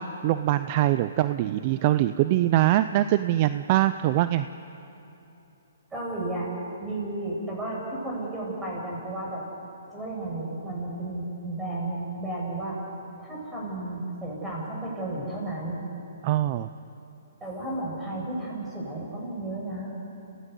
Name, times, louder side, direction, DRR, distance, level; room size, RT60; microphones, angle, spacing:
voice 1, 0.0-4.5 16.2-16.7, right 14 dB, 40° right, 12 dB, 0.6 m, -23 dB
voice 2, 5.9-6.5 6.8-9.4 9.9-12.8 13.2-15.8 17.4-19.9, right 2 dB, 10° right, -4 dB, 7.8 m, -33 dB
27.5 x 17.0 x 8.4 m, 3.0 s
hypercardioid pair, 140°, 0 cm